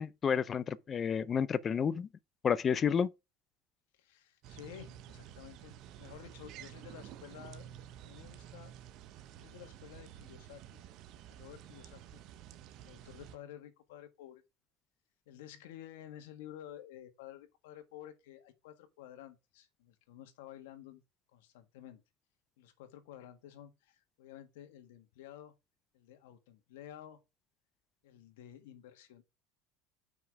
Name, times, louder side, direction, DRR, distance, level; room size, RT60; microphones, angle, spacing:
voice 1, 0.0-2.1 2.4-3.1, left 7 dB, 25° left, 0.5 m, -30 dB
voice 2, 3.9-7.7 8.0-8.7 9.3-10.8 11.3-12.2 12.8-14.4 15.3-21.0 21.3-22.0 22.6-25.6 25.9-27.2 28.0-29.2, left 11 dB, 85° left, 1.7 m, -52 dB
sound 1, 4.4-13.4, right 11 dB, 50° right, 0.9 m, -51 dB
7.3 x 5.8 x 4.7 m
supercardioid pair, 135°, 0 cm